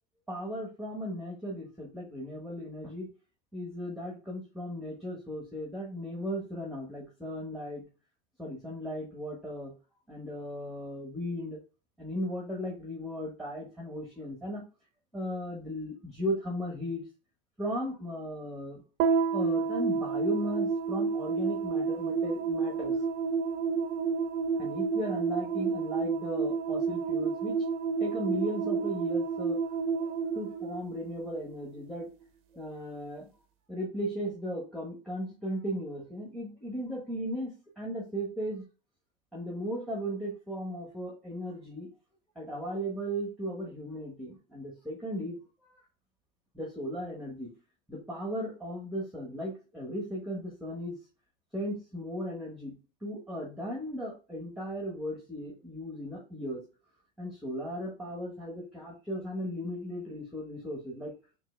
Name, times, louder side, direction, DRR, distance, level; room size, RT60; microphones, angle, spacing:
voice 1, 0.3-3.1 3.5-7.8 8.4-9.7 10.1-11.6 12.0-14.6 15.1-17.0 17.6-18.8 19.3-23.0 24.6-27.6 28.0-29.6 30.3-32.1 32.5-33.3 33.7-38.6 39.3-41.9 42.3-45.8 46.5-47.5 47.9-51.0 51.5-56.6 57.2-61.1, equal, ahead, -2 dB, 1.4 m, -36 dB
sound 1, 19.0-31.5, right 5 dB, 45° right, 0.9 m, -30 dB
6.4 x 2.7 x 2.2 m, 0.34 s
hypercardioid pair, 95°, 30 cm